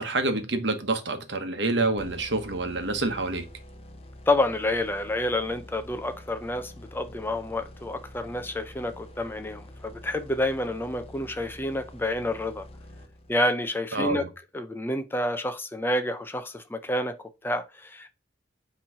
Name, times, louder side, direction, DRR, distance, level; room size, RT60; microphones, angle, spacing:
voice 1, 0.0-3.5 13.9-14.3, right 2 dB, 65° right, 1.1 m, -27 dB
sound 1, 2.0-13.6, left 1 dB, 30° left, 0.8 m, -46 dB
voice 2, 4.3-12.7 13.3-18.1, left 1 dB, 10° left, 0.4 m, -29 dB
8.6 x 3.1 x 4.7 m
head